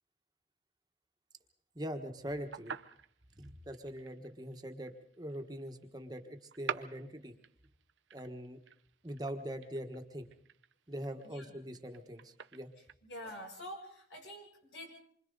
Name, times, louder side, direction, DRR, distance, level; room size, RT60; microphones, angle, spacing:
voice 1, 1.7-2.7 3.4-7.3 8.1-8.6 9.0-10.3 10.9-12.7, equal, 20° right, 5 dB, 1.3 m, -42 dB
sound 1, 2.2-12.9, right 7 dB, 85° right, 0.8 m, -48 dB
voice 2, 11.2-11.6 13.0-15.0, equal, 85° left, -1 dB, 7.2 m, -47 dB
27.5 x 24.5 x 4.0 m, 0.64 s
head